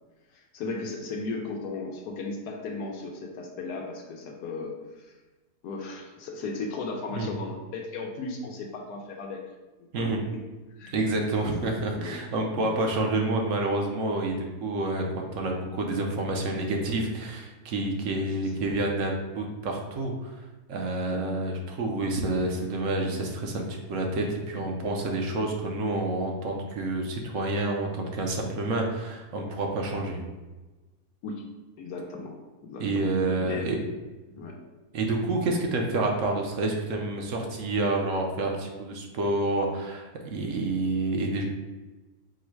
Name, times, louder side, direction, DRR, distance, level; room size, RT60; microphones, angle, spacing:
voice 1, 0.3-5.1 5.6-9.4 10.0-10.4 10.7-11.1 11.4-12.2 12.6-12.8 18.1-18.2 31.2-31.5 31.8-33.7 34.4-34.6, left 3 dB, 80° left, 1 dB, 1.1 m, -36 dB
voice 2, 10.9-20.3 20.7-30.2 32.8-33.8 34.3-34.5 34.9-41.4, right 2 dB, 65° right, 1 dB, 0.9 m, -28 dB
4.6 x 2.1 x 4.5 m, 1.2 s
omnidirectional pair, 1.7 m